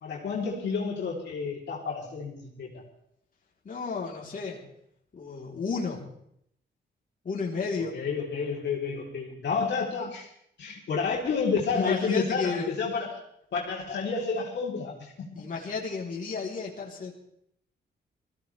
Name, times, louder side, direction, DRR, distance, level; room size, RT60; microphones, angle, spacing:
voice 1, 0.0-2.7 7.9-10.3 10.6-13.2 13.5-15.4, left 5 dB, 70° left, -3 dB, 3.6 m, -30 dB
voice 2, 3.6-4.6 5.1-6.1 7.2-8.0 11.7-12.7 15.3-17.1, left 4 dB, 45° left, -2 dB, 3.7 m, -32 dB
21.0 x 15.5 x 3.4 m, 0.72 s
cardioid pair, 75°, 19 cm